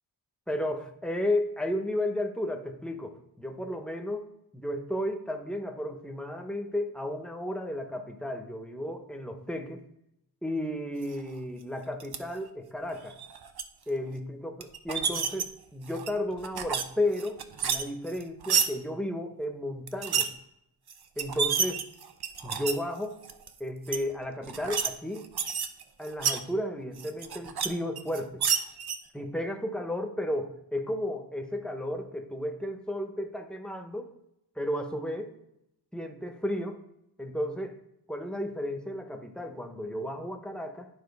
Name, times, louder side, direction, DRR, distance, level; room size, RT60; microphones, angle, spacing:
voice 1, 0.5-9.8 10.4-13.2 13.9-20.3 21.2-21.8 22.4-23.2 23.6-25.3 26.0-28.4 29.1-34.1 34.6-35.3 35.9-36.8 37.2-37.8 38.1-40.9, left 1 dB, ahead, 5 dB, 0.9 m, -33 dB
sound 1, 12.0-12.2 13.1-13.6 14.6-15.4 15.9-16.8 17.1-18.7 19.9-20.3 20.9-21.0 21.2-22.8 23.2-23.5 23.9-24.0 24.4-24.9 25.2-26.4 27.0-27.7 28.0-29.0, right 7 dB, 60° right, 0.7 m, -29 dB
10.5 x 3.8 x 5.3 m, 0.81 s
wide cardioid pair, 95°, 44 cm